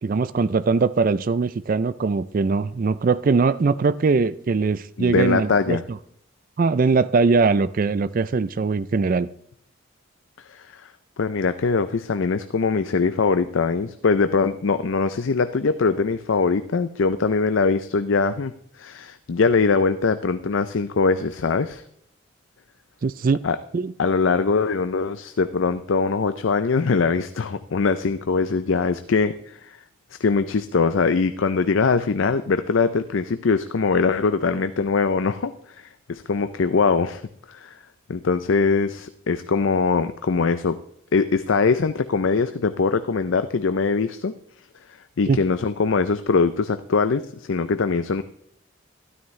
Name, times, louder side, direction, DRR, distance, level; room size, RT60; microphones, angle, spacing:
voice 1, 0.0-6.0 6.6-9.3 23.0-23.4 23.7-23.9 45.3-45.4, right 4 dB, 40° right, 15 dB, 0.4 m, -21 dB
voice 2, 5.0-5.8 10.4-10.9 11.2-21.8 23.4-23.6 24.0-29.8 30.2-37.2 37.5-37.8 38.1-40.8 41.1-44.3 45.2-48.2, left 4 dB, 70° left, 11 dB, 0.5 m, -22 dB
12.5 x 12.5 x 3.2 m, 0.70 s
head